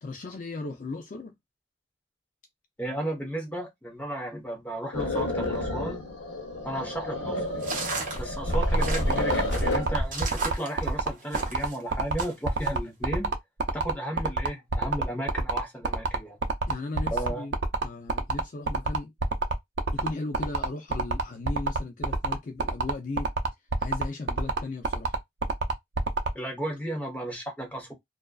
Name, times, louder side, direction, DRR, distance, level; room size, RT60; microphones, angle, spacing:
voice 1, 0.0-1.3 16.7-19.1 19.9-23.3 23.8-25.2, left 3 dB, 45° left, 0.4 m, -37 dB
voice 2, 2.8-6.0 6.6-7.6 8.1-13.3 13.7-16.4 17.1-17.5 26.3-27.9, right 1 dB, 10° left, 0.9 m, -34 dB
sound 1, 4.9-10.1, left 1 dB, 85° left, 0.7 m, -29 dB
sound 2, 7.6-11.8 12.2-12.7, right 3 dB, 45° right, 0.9 m, -35 dB
sound 3, 8.5-26.3, right 4 dB, 70° right, 0.5 m, -27 dB
2.4 x 2.3 x 2.3 m
head